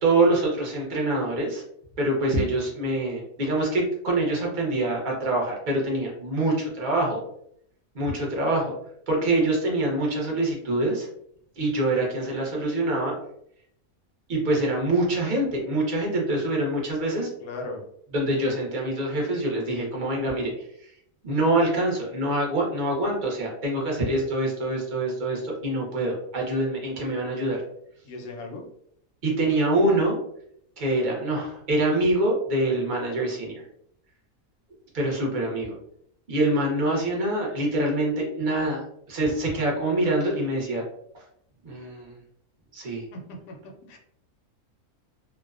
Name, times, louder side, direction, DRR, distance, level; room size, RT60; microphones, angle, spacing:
voice 1, 0.0-1.6 2.0-7.2 7.9-8.7 9.1-11.1 11.6-13.1 14.3-17.3 18.1-20.9 21.2-27.6 29.2-30.2 30.8-33.6 34.9-35.7 36.3-38.8 39.1-40.8 41.1-41.2 41.6-42.2 42.7-43.1, right 1 dB, 50° right, -2 dB, 0.6 m, -25 dB
voice 2, 17.4-17.8 28.0-28.6 43.1-43.2 43.5-43.6 43.9-44.0, left 2 dB, 75° left, 2 dB, 1.0 m, -36 dB
2.6 x 2.1 x 2.4 m, 0.71 s
omnidirectional pair, 1.6 m